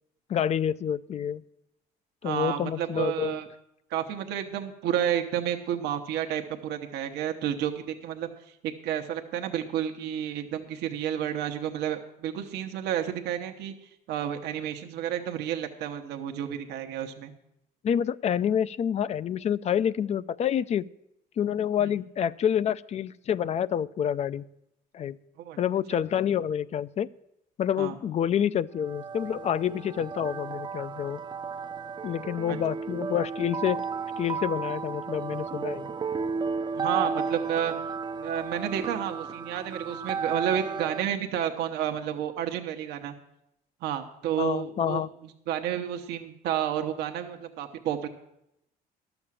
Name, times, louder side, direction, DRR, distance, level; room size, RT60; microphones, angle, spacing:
voice 1, 0.3-1.4 2.2-3.4 17.8-20.8 21.4-24.4 24.9-25.2 25.6-27.1 27.6-31.2 32.0-33.8 34.2-36.0 44.4-45.1, left 9 dB, 40° left, 17 dB, 0.4 m, -28 dB
voice 2, 2.2-3.5 3.9-8.3 8.6-13.7 14.1-17.3 21.8-21.9 25.4-25.6 25.9-26.0 27.8-27.9 32.5-32.6 36.7-37.7 38.2-43.1 43.8-45.0 45.5-48.1, right 10 dB, 85° right, 4 dB, 1.0 m, -31 dB
sound 1, 28.8-41.1, right 5 dB, 25° right, 0.4 m, -33 dB
12.0 x 7.0 x 7.4 m, 0.83 s
cardioid pair, 110°, 17 cm